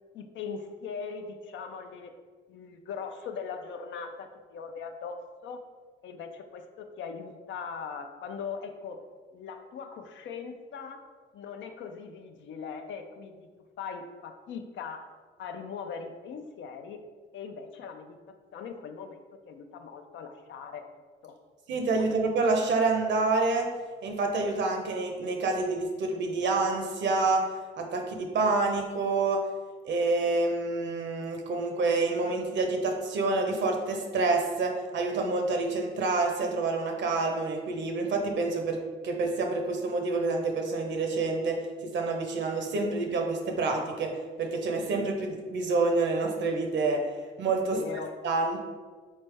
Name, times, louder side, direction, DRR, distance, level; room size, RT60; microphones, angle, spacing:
voice 1, 0.1-2.1 2.5-5.6 6.0-9.0 9.3-11.0 11.3-13.5 13.8-15.1 15.4-17.0 17.3-20.8 21.2-21.4 21.9-22.1 47.7-48.1, left 6 dB, 70° left, 6 dB, 0.5 m, -40 dB
voice 2, 21.7-23.7 24.0-27.4 27.8-29.4 29.8-44.1 44.4-47.0 47.4-47.8 48.2-48.6, right 3 dB, 65° right, 3 dB, 0.8 m, -28 dB
4.2 x 3.3 x 3.3 m, 1.5 s
cardioid pair, 90°, 20 cm